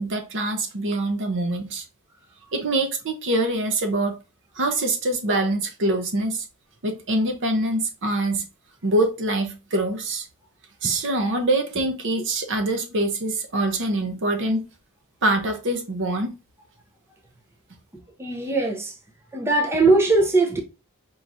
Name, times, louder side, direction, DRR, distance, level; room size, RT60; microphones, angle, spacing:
voice 1, 0.0-1.8 2.5-4.2 4.6-6.4 6.8-8.4 8.8-10.2 10.8-14.6 15.2-16.3, right 2 dB, 55° right, 0.8 m, -24 dB
voice 2, 18.2-18.9 19.3-20.6, right 3 dB, 10° right, 0.6 m, -20 dB
4.7 x 3.0 x 2.6 m
head